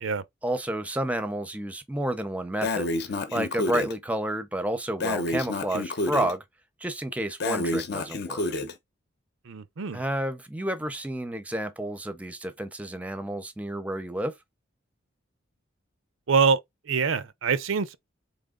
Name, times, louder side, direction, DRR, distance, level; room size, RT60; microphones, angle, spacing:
voice 1, 0.4-2.9 3.3-6.4 6.8-8.4 9.9-14.3, right 1 dB, 5° right, 0.6 m, -30 dB
Breathing, 2.6-3.9 5.0-6.3 7.4-8.7, left 2 dB, 55° left, 0.8 m, -29 dB
voice 2, 9.5-10.0 16.3-16.6 16.9-18.0, right 5 dB, 75° right, 0.6 m, -24 dB
4.3 x 3.4 x 3.7 m
head